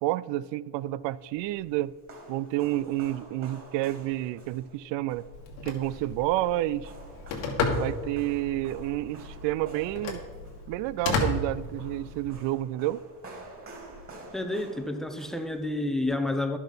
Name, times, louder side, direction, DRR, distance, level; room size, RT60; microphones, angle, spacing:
voice 1, 0.0-2.0 2.3-5.3 5.6-6.9 7.7-10.2 10.7-13.1, right 15 dB, 65° right, 0.5 m, -29 dB
sound 1, 1.0-16.1, right 2 dB, 25° right, 3.0 m, -49 dB
Telephone, 5.3-12.3, left 3 dB, 90° left, 2.2 m, -34 dB
voice 2, 14.3-16.6, left 2 dB, ahead, 0.7 m, -29 dB
11.5 x 7.2 x 5.6 m
cardioid pair, 125°, 48 cm